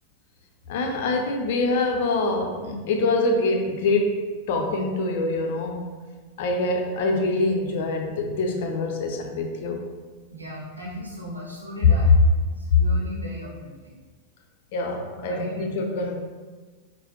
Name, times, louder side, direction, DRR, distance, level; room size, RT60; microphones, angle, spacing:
voice 1, 0.7-5.9 6.4-9.8 12.7-12.8 14.7-16.2, left 2 dB, 60° left, 3 dB, 0.5 m, -25 dB
voice 2, 10.3-12.1 12.4-14.0 15.2-15.7, equal, 85° right, -5 dB, 0.6 m, -36 dB
4.8 x 2.0 x 2.9 m, 1.4 s
figure-of-eight pair, 90°, 0 cm